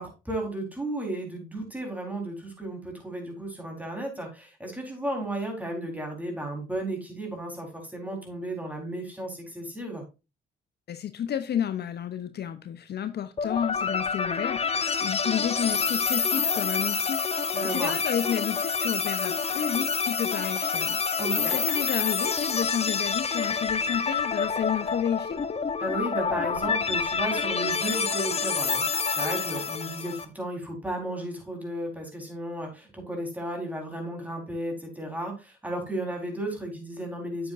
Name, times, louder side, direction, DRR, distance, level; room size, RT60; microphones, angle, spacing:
voice 1, 0.0-10.0 17.5-17.9 21.2-21.5 25.8-37.5, right 1 dB, 10° right, 4.1 m, -34 dB
voice 2, 10.9-21.0 21.4-25.4, left 9 dB, 55° left, 0.7 m, -31 dB
sound 1, 13.4-30.2, left 5 dB, 30° left, 0.9 m, -28 dB
8.8 x 7.9 x 2.6 m
cardioid pair, 90°, 20 cm